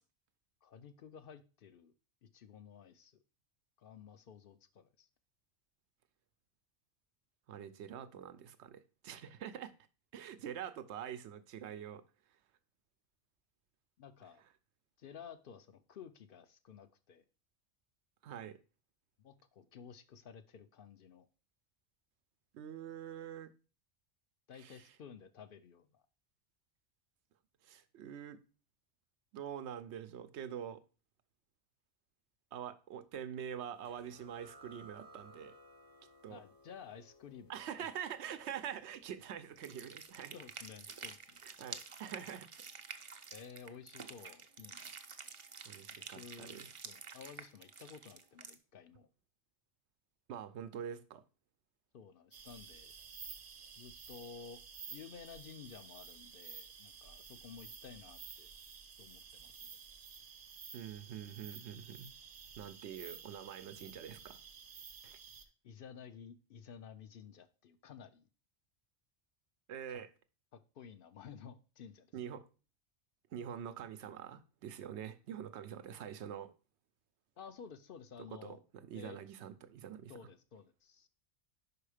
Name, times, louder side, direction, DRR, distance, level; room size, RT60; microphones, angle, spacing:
voice 1, 0.6-1.9 2.2-3.2 3.8-5.1 14.0-14.4 15.0-17.2 19.2-21.3 24.5-26.0 36.3-37.5 37.8-37.9 40.3-41.4 43.3-44.9 46.2-49.1 51.9-52.9 53.8-54.6 54.9-58.5 59.0-59.8 65.6-68.3 69.9-70.0 70.5-72.1 77.4-78.6 78.9-79.2 80.1-81.1, left 7 dB, 60° left, 0.7 m, -53 dB
voice 2, 7.5-9.7 10.1-12.0 18.2-18.6 22.5-23.5 24.6-24.9 27.6-28.4 29.3-30.8 32.5-35.5 36.2-36.4 37.5-40.3 41.4-42.6 45.7-46.7 50.3-51.2 60.7-62.1 62.6-64.4 65.0-65.2 69.7-70.1 72.1-72.5 73.3-76.5 78.4-80.1, right 9 dB, 85° right, 0.9 m, -45 dB
sound 1, 33.8-41.1, right 1 dB, 25° left, 0.6 m, -61 dB
sound 2, 39.6-48.5, right 5 dB, 40° right, 0.5 m, -49 dB
sound 3, 52.3-65.4, right 6 dB, 55° right, 0.9 m, -52 dB
5.5 x 4.9 x 4.9 m
omnidirectional pair, 1.1 m